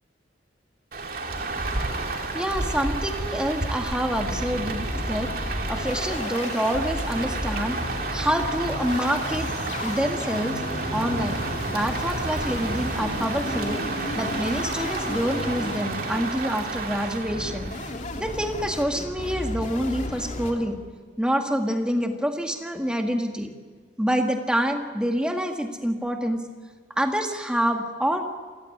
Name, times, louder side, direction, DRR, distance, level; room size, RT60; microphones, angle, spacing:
Rain, 0.9-17.9, right 2 dB, 50° right, 2.7 m, -31 dB
voice 1, 2.3-5.3 5.7-9.5 9.8-10.6 10.9-11.4 11.7-13.8 14.2-17.7 18.2-20.8 21.2-23.5 24.0-26.4 27.0-28.2, equal, 5° right, 3 dB, 1.9 m, -27 dB
sound 1, 2.5-2.9 3.3-3.4 3.6-3.7 4.1-20.5, left 1 dB, 40° left, 2.7 m, -34 dB
28.0 x 16.0 x 9.9 m, 1.5 s
head